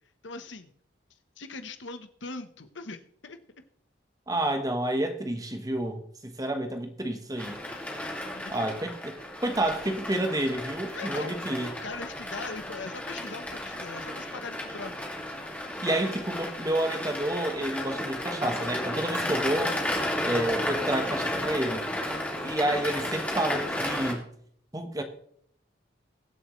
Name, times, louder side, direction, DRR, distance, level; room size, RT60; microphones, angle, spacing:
voice 1, 0.2-0.7 1.4-3.4 8.3-8.8 10.9-11.3 11.8-15.0 22.3-22.5, left 3 dB, 80° left, 1.1 m, -41 dB
voice 2, 4.3-7.6 8.5-9.2 9.4-11.7 15.8-19.7 20.2-21.9 22.4-24.3 24.7-25.0, right 1 dB, 20° right, 1.2 m, -29 dB
sound 1, 7.4-24.1, left 1 dB, 5° left, 2.2 m, -33 dB
22.5 x 7.6 x 3.2 m
head